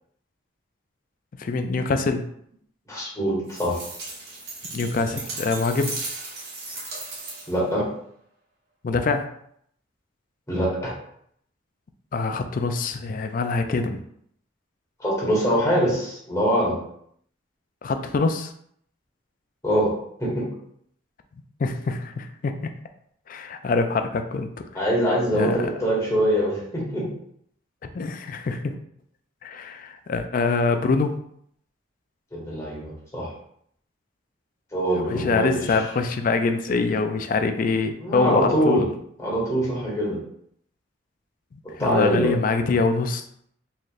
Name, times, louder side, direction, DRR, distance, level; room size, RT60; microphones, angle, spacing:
voice 1, 1.4-2.3 4.7-5.9 8.8-9.3 12.1-14.0 17.8-18.5 21.6-22.7 23.3-24.5 25.3-25.7 27.8-28.7 29.4-31.1 35.1-38.8 41.5-43.3, left 4 dB, 45° left, 7 dB, 0.3 m, -24 dB
voice 2, 2.9-3.8 7.5-7.9 10.5-10.9 15.0-16.7 19.6-19.9 20.2-20.5 24.7-27.0 32.3-33.3 34.7-35.8 38.0-38.8 39.2-40.2 41.8-42.3, equal, 15° left, -6 dB, 1.4 m, -23 dB
sound 1, 3.5-7.7, right 3 dB, 55° right, 1.3 m, -36 dB
4.2 x 3.2 x 2.4 m, 0.68 s
head